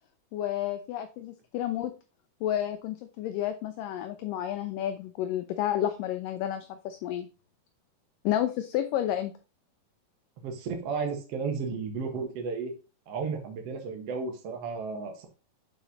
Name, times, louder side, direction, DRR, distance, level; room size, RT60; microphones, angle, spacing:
voice 1, 0.3-1.9 2.4-7.3 8.3-9.3, left 11 dB, 80° left, 8 dB, 2.0 m, -31 dB
voice 2, 10.4-12.7 13.1-15.3, right 5 dB, 55° right, 3 dB, 1.8 m, -33 dB
7.0 x 5.0 x 4.1 m, 0.34 s
omnidirectional pair, 4.3 m